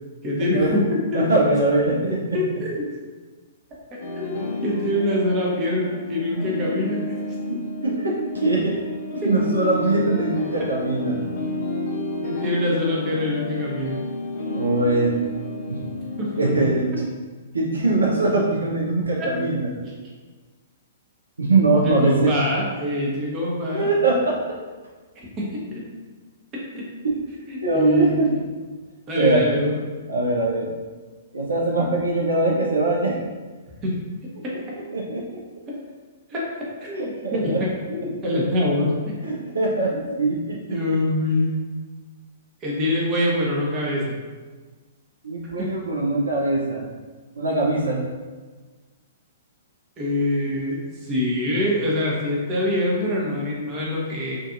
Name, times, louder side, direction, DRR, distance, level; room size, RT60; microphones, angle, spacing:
voice 1, 0.2-0.8 1.1-1.2 2.3-2.9 3.9-7.0 9.4-9.5 12.2-14.0 16.2-16.3 19.2-19.3 19.8-19.9 21.8-23.9 25.4-25.9 26.7-26.9 27.5-28.1 29.1-29.8 33.8-33.9 34.4-34.7 35.7-35.8 36.3-36.4 36.8-39.0 40.7-41.5 42.6-44.2 45.6-45.7 50.0-54.4, left 1 dB, 25° right, -4 dB, 0.7 m, -24 dB
voice 2, 1.1-2.4 7.5-8.7 9.1-11.2 14.5-15.1 15.7-15.8 16.4-17.0 17.5-19.7 21.4-22.3 23.7-24.6 27.0-27.2 27.6-28.3 29.1-29.4 30.1-30.7 31.3-33.2 34.9-35.4 36.9-37.6 39.2-40.8 45.2-46.9 47.4-48.0, right 2 dB, 75° right, -3 dB, 0.5 m, -22 dB
sound 1, 4.0-16.8, left 2 dB, 55° left, 0.4 m, -31 dB
2.5 x 2.5 x 2.5 m, 1.4 s
figure-of-eight pair, 110°, 0 cm